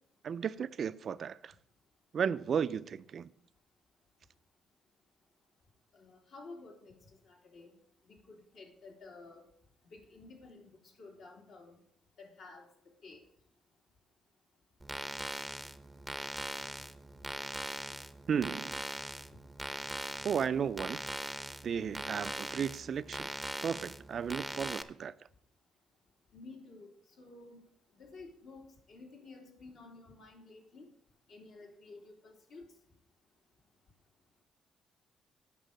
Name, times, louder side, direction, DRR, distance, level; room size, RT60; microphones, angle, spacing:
voice 1, 0.2-1.5 2.1-3.3 18.3-18.8 20.2-21.0 21.6-23.3 23.6-25.1, right 7 dB, 55° right, 0.4 m, -34 dB
voice 2, 5.9-7.0 7.2-7.7 8.0-9.4 9.9-10.7 11.0-11.8 12.2-12.7 13.0-13.2 26.3-26.9 27.2-27.6 28.0-30.9 31.3-32.7, left 3 dB, 70° left, 3.0 m, -52 dB
sound 1, 14.8-24.8, right 1 dB, 5° right, 0.7 m, -41 dB
9.0 x 5.5 x 6.5 m
cardioid pair, 90°, 0 cm